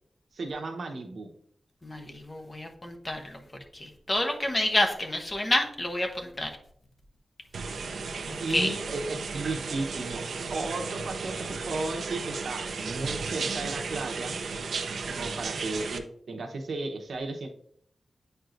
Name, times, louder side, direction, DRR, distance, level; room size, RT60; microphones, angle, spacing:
voice 1, 0.3-1.3 8.4-10.2 10.5-11.3 11.7-14.3 15.0-17.5, right 3 dB, 70° right, 3 dB, 0.9 m, -34 dB
voice 2, 1.8-3.4 3.7-6.5 8.3-8.7, left 1 dB, 25° left, 4 dB, 0.9 m, -29 dB
Shower water running, 7.5-16.0, right 4 dB, 85° right, 0.6 m, -34 dB
8.9 x 4.5 x 2.6 m, 0.66 s
wide cardioid pair, 140°, 0 cm